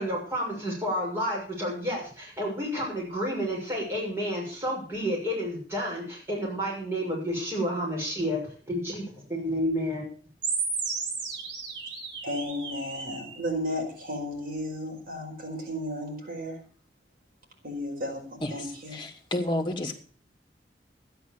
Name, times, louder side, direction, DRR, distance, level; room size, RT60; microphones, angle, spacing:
voice 1, 0.0-8.4 8.7-10.1, equal, 15° right, -4 dB, 6.6 m, -30 dB
sound 1, 10.4-13.4, right 5 dB, 85° right, 3.2 m, -33 dB
voice 2, 12.2-16.6 17.6-19.1, equal, 50° right, 0 dB, 4.9 m, -34 dB
voice 3, 18.9-20.0, left 1 dB, 25° left, 2 dB, 2.3 m, -30 dB
12.5 x 10.5 x 7.0 m, 0.43 s
head